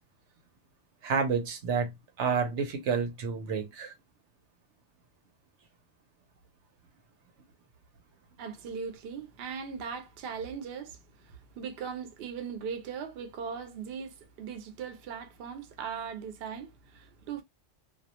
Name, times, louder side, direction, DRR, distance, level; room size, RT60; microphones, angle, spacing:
voice 1, 1.0-1.9 2.2-3.9, right 5 dB, 85° right, 0.9 m, -29 dB
voice 2, 8.4-17.4, right 6 dB, 65° right, 0.7 m, -39 dB
2.3 x 2.2 x 2.8 m
omnidirectional pair, 1.2 m